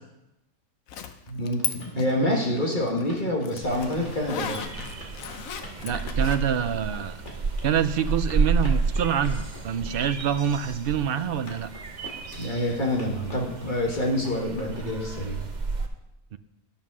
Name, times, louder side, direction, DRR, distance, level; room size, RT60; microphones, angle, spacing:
Zipper (clothing), 0.9-1.7 2.0-6.4, left 7 dB, 80° left, 1.2 m, -35 dB
voice 1, 1.3-4.7 12.4-15.4, left 1 dB, 35° left, -1 dB, 1.8 m, -27 dB
sound 1, 1.5-15.3, left 1 dB, 60° left, 2.6 m, -46 dB
sound 2, 3.6-15.9, right 4 dB, 35° right, 0.9 m, -31 dB
voice 2, 5.8-7.2 7.6-11.7 16.3-16.4, right 8 dB, 65° right, 12 dB, 0.6 m, -26 dB
11.0 x 7.3 x 6.1 m, 0.92 s
omnidirectional pair, 1.4 m